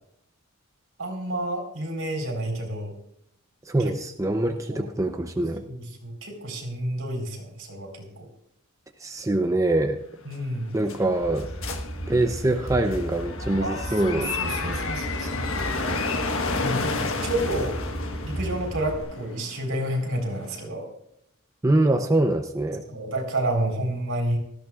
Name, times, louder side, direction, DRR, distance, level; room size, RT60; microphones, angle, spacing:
voice 1, 1.0-2.9 3.8-3.9 4.7-4.9 5.6-8.3 10.3-10.7 13.6-15.8 16.6-17.8 18.2-20.9 22.9-24.4, right 1 dB, 70° right, 2 dB, 4.0 m, -30 dB
voice 2, 3.7-5.6 9.0-10.0 10.7-11.5 12.1-14.3 21.6-22.8, right 2 dB, 15° right, 5 dB, 0.6 m, -24 dB
sound 1, 10.3-20.6, left 3 dB, 65° left, 1.4 m, -32 dB
sound 2, 11.2-19.0, right 1 dB, 35° left, 5.8 m, -35 dB
18.5 x 14.0 x 2.4 m, 0.75 s
head